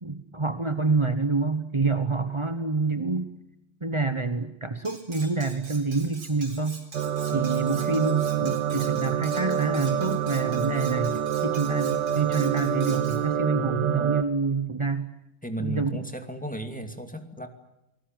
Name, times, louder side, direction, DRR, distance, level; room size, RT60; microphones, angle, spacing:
voice 1, 0.0-3.3 3.8-6.8 7.3-15.1 15.6-16.0, right 3 dB, 30° right, 10 dB, 0.5 m, -27 dB
Cutlery silverware, 4.9-13.2, right 3 dB, 90° right, 5.3 m, -45 dB
sound 1, 6.9-14.2, right 9 dB, 55° right, 1.9 m, -27 dB
voice 2, 15.4-17.5, right 1 dB, 5° left, 6 dB, 2.3 m, -34 dB
29.0 x 19.5 x 9.1 m, 0.90 s
omnidirectional pair, 2.4 m